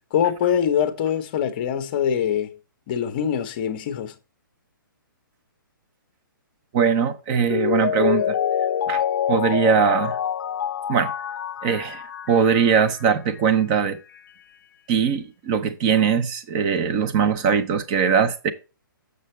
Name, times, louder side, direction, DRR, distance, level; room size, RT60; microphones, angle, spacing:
voice 1, 0.1-2.6 2.9-4.1, left 8 dB, 25° left, 0.7 m, -23 dB
voice 2, 6.7-8.4 8.9-9.0 9.3-10.2 10.9-11.1 11.6-14.0 14.9-18.5, right 7 dB, 20° right, 0.5 m, -21 dB
Mallet percussion, 7.5-13.0 13.4-13.5, left 9 dB, 55° left, 0.4 m, -26 dB
6.7 x 6.5 x 3.1 m
hypercardioid pair, 165°, 12 cm